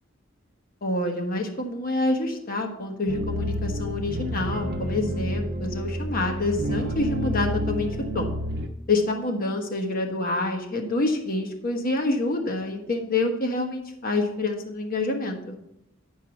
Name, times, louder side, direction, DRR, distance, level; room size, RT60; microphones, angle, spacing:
voice 1, 0.8-8.3 8.9-15.6, left 2 dB, 45° left, 3 dB, 1.2 m, -27 dB
sound 1, 3.1-8.7, equal, 50° right, 0.8 m, -29 dB
9.9 x 4.7 x 5.7 m, 0.81 s
head